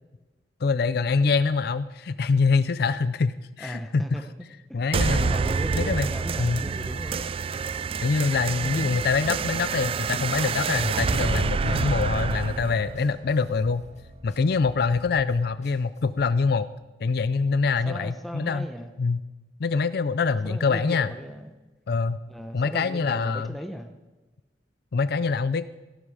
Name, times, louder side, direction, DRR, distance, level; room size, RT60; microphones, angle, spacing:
voice 1, 0.6-4.0 4.7-5.3 5.8-6.1 6.4-6.6 8.0-13.8 14.2-16.7 17.0-18.7 19.0-19.2 19.6-21.1 21.9-22.2 22.5-23.5 24.9-25.7, left 4 dB, 60° left, 14 dB, 0.4 m, -24 dB
voice 2, 3.6-4.2 4.7-7.2 8.7-8.8 17.8-18.9 20.4-21.5 22.3-23.9, equal, ahead, 5 dB, 0.9 m, -37 dB
sound 1, 4.9-13.9, right 4 dB, 30° right, 0.4 m, -27 dB
sound 2, 5.9-16.3, equal, 40° left, 2.1 m, -49 dB
17.0 x 12.5 x 4.9 m, 1.1 s
head